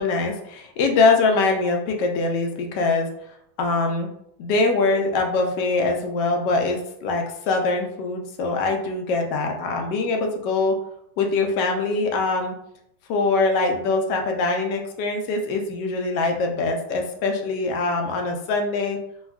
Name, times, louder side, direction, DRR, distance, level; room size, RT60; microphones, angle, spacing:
voice 1, 0.0-3.1 3.6-4.1 4.4-10.8 11.2-12.6 13.1-19.0, left 3 dB, 75° left, 3 dB, 1.1 m, -23 dB
3.3 x 2.2 x 2.2 m, 0.74 s
omnidirectional pair, 2.0 m